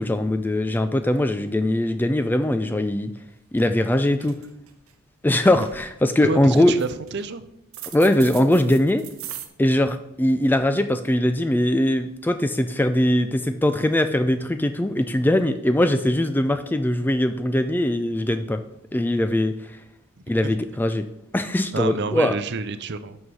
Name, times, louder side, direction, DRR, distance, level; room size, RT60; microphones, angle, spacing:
voice 1, 0.0-3.1 3.5-4.4 5.2-6.7 7.9-9.0 9.6-18.6 18.9-19.8 20.3-21.1 21.3-22.4, left 1 dB, 10° left, 9 dB, 0.3 m, -21 dB
sound 1, 3.2-3.3 3.6-3.9 4.1-4.9 5.3-5.9 6.6-7.2 7.7-9.5, right 11 dB, 75° right, 0.9 m, -39 dB
voice 2, 6.2-7.4 21.7-23.2, right 4 dB, 50° right, 12 dB, 0.6 m, -28 dB
6.2 x 5.5 x 6.1 m, 0.83 s
head